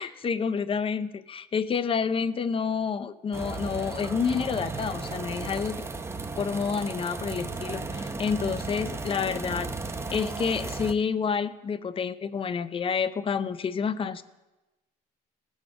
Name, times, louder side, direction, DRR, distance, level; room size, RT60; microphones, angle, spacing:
voice 1, 0.0-5.8 6.4-9.7 10.1-14.2, left 6 dB, 30° left, 14 dB, 0.6 m, -29 dB
sound 1, 3.3-10.9, right 3 dB, 15° right, 0.6 m, -35 dB
17.5 x 6.3 x 5.1 m, 1.1 s
cardioid pair, 110°, 17 cm